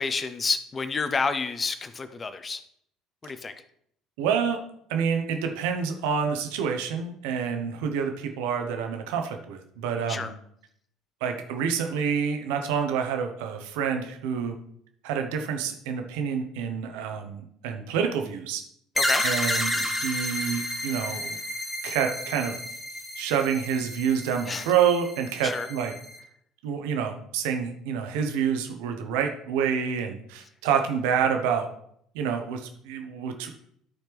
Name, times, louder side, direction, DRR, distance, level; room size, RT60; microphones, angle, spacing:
voice 1, 0.0-2.6 3.2-3.5 10.1-10.3 19.0-19.2 24.5-24.7 25.4-25.7, left 4 dB, 25° left, 11 dB, 0.7 m, -29 dB
voice 2, 4.2-4.6 4.9-10.3 11.2-14.6 15.0-18.6 19.2-21.4 21.8-22.6 23.2-25.9 26.6-31.7 32.1-33.5, right 7 dB, 60° right, 5 dB, 0.9 m, -28 dB
sound 1, 18.9-26.2, left 1 dB, 10° left, 1.2 m, -31 dB
13.0 x 4.4 x 3.5 m, 0.69 s
figure-of-eight pair, 60°, 0 cm